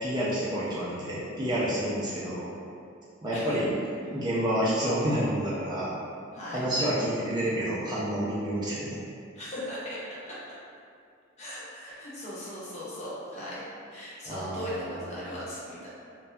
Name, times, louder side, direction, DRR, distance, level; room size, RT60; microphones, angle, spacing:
voice 1, 0.0-2.5 3.2-3.7 4.0-5.9 6.5-9.0 14.3-15.0, equal, 20° right, -8 dB, 0.4 m, -29 dB
voice 2, 9.4-10.4 11.4-15.9, left 1 dB, 35° left, -9 dB, 0.6 m, -38 dB
2.6 x 2.2 x 2.2 m, 2.3 s
head